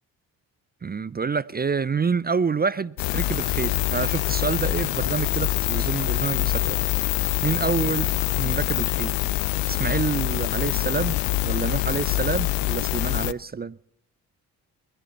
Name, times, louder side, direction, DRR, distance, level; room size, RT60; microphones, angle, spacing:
voice 1, 0.8-6.8 7.4-8.1 8.4-9.1 9.7-13.8, right 5 dB, 20° right, 0.5 m, -27 dB
sound 1, 3.0-13.3, left 19 dB, 70° left, 0.6 m, -25 dB
21.5 x 14.5 x 4.2 m
hypercardioid pair, 40°, 44 cm